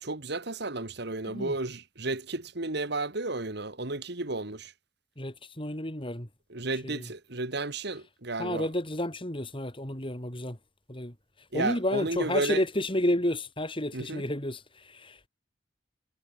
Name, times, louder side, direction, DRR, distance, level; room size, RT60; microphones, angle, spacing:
voice 1, 0.0-4.7 6.5-8.7 11.5-12.6 13.9-14.2, right 2 dB, 60° right, 2.4 m, -33 dB
voice 2, 5.2-6.3 6.8-7.1 8.4-10.6 10.9-11.1 11.5-15.3, left 1 dB, 30° left, 4.6 m, -31 dB
head